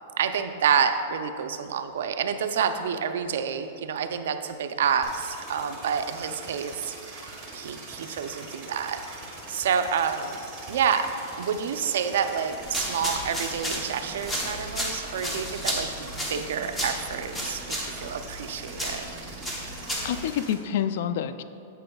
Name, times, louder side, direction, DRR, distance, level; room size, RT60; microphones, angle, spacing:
voice 1, 0.2-10.4 10.7-11.1 11.4-19.1, right 7 dB, 75° right, 8 dB, 0.5 m, -28 dB
sound 1, 5.0-20.5, right 2 dB, 15° right, 1.3 m, -42 dB
sound 2, 12.6-20.3, equal, 5° left, 0.8 m, -33 dB
voice 2, 19.7-21.4, left 9 dB, 55° left, 12 dB, 0.3 m, -28 dB
9.1 x 7.7 x 2.3 m, 2.5 s
supercardioid pair, 160°, 0 cm